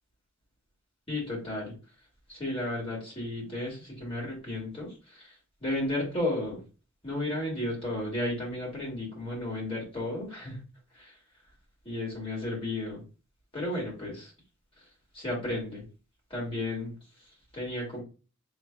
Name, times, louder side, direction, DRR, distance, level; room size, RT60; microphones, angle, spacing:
voice 1, 1.1-1.7 2.3-6.6 7.0-10.6 10.9-11.1 11.8-13.0 13.5-14.3 15.1-15.8 16.3-16.9 17.5-18.0, left 1 dB, 25° left, -4 dB, 2.0 m, -33 dB
6.0 x 3.2 x 2.3 m, 0.33 s
head